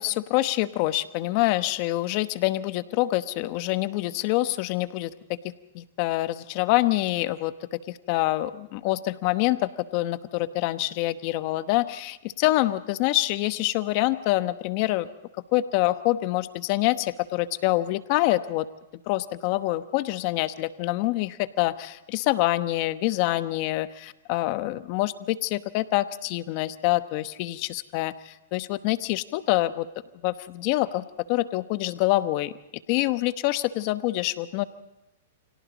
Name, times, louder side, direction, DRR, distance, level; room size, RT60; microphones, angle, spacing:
voice 1, 0.0-5.1 5.4-15.1 15.5-18.7 19.1-29.9 30.2-31.0 31.3-32.5 32.9-34.6, left 17 dB, 45° left, 12 dB, 1.0 m, -26 dB
29.5 x 25.0 x 4.1 m, 0.94 s
hypercardioid pair, 140°, 0 cm